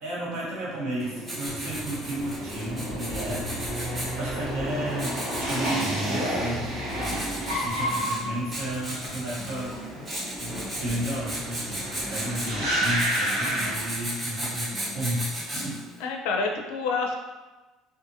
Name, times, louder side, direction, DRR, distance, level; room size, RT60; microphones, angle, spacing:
voice 1, 0.0-3.5 4.2-6.7 6.9-9.8 10.4-15.8, right 1 dB, 70° right, -7 dB, 1.0 m, -33 dB
Writing, 1.0-15.9, right 1 dB, 20° right, 0.7 m, -36 dB
sound 1, 1.5-14.6 14.8-15.4, equal, 90° right, 1.2 m, -31 dB
sound 2, 7.9-15.9, right 1 dB, 30° left, 0.5 m, -47 dB
voice 2, 16.0-17.1, left 4 dB, 85° left, 2 dB, 0.4 m, -28 dB
2.5 x 2.5 x 2.6 m, 1.2 s
cardioid pair, 130°, 0 cm